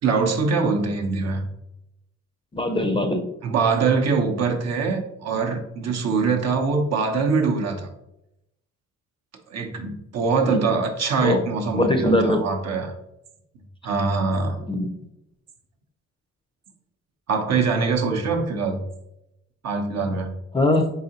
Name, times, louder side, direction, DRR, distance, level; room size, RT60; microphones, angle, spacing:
voice 1, 0.0-1.4 3.4-7.9 9.5-12.9 13.8-14.6 17.3-18.8 19.6-20.3, right 4 dB, 60° right, 3 dB, 0.8 m, -23 dB
voice 2, 2.5-3.2 10.5-10.8 11.2-11.4 11.8-12.5 14.7-14.9 20.5-20.9, left 1 dB, 15° left, 5 dB, 0.5 m, -21 dB
4.0 x 3.7 x 2.8 m, 0.85 s
cardioid pair, 90°, 30 cm